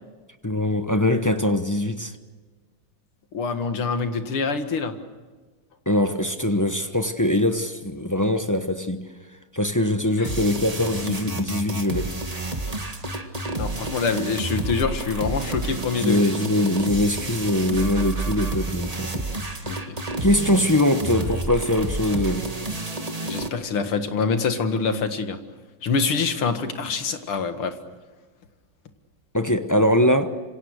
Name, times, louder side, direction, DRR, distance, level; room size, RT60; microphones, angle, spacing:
voice 1, 0.4-2.1 5.9-9.1 9.5-12.1 16.0-19.2 20.2-22.5 29.3-30.3, left 1 dB, 15° left, 0.6 m, -22 dB
voice 2, 3.3-4.9 10.2-10.3 13.6-16.3 19.6-20.0 23.2-25.4 25.8-27.8, left 5 dB, 85° left, 2.7 m, -25 dB
sound 1, 10.2-23.5, right 2 dB, 20° right, 1.8 m, -30 dB
27.0 x 26.5 x 6.6 m
omnidirectional pair, 2.3 m